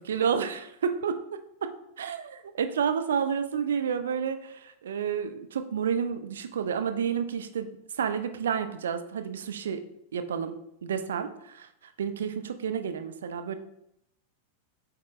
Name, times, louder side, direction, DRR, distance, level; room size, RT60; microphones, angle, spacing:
voice 1, 0.0-1.7 2.0-7.7 8.0-9.8 10.1-13.6, right 7 dB, 65° right, 8 dB, 0.5 m, -30 dB
8.3 x 3.6 x 3.2 m, 0.77 s
figure-of-eight pair, 90°, 0 cm